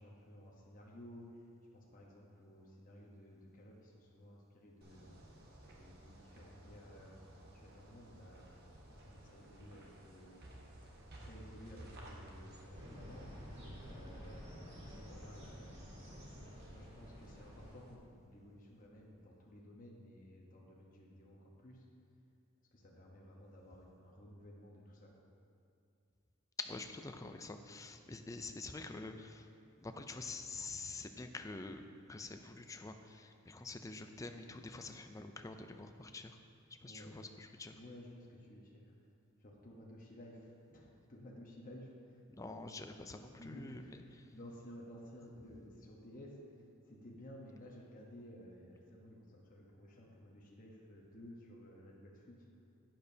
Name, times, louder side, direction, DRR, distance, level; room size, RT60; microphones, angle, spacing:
voice 1, 0.0-5.2 5.8-13.3 13.8-16.2 16.6-21.9 22.7-25.2 33.6-33.7 36.8-37.3 37.7-39.1 39.4-42.6 43.0-43.1 43.4-52.5, equal, 40° left, -3 dB, 1.0 m, -55 dB
sound 1, 4.8-17.9, right 1 dB, 50° right, 1.3 m, -57 dB
sound 2, 12.7-17.7, equal, 30° right, 1.9 m, -51 dB
voice 2, 26.6-29.5 29.8-36.4 36.8-37.8 42.4-43.8 44.2-44.3, left 3 dB, 15° left, 7 dB, 0.4 m, -47 dB
11.5 x 8.7 x 2.8 m, 2.5 s
head